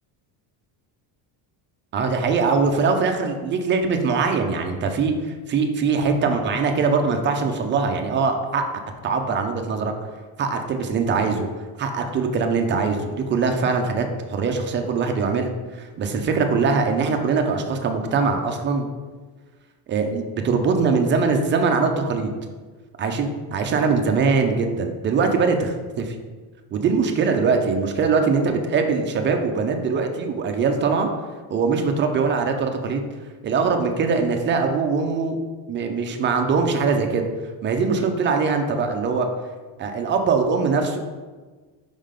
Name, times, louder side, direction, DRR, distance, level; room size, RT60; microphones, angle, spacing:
voice 1, 1.9-8.7 9.0-9.9 10.4-11.5 11.8-18.9 19.9-22.3 23.0-26.1 26.7-31.1 31.5-33.0 33.4-35.4 35.7-37.2 37.6-39.3 39.8-41.0, right 4 dB, 25° right, 4 dB, 0.4 m, -22 dB
5.5 x 3.7 x 5.0 m, 1.4 s
cardioid pair, 155°, 46 cm